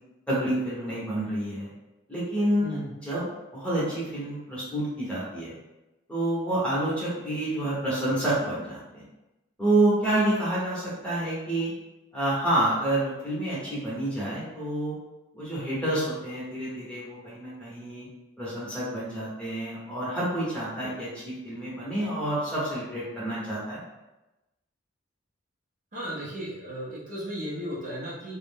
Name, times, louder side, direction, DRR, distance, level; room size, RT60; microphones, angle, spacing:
voice 1, 0.3-1.7 2.1-2.7 3.0-3.3 3.5-5.6 6.1-9.0 9.6-11.7 12.1-14.9 15.3-18.1 18.4-23.8, right 1 dB, 5° left, -8 dB, 0.9 m, -28 dB
voice 2, 25.9-28.4, equal, 40° right, -6 dB, 0.6 m, -35 dB
2.5 x 2.0 x 3.4 m, 1.0 s
head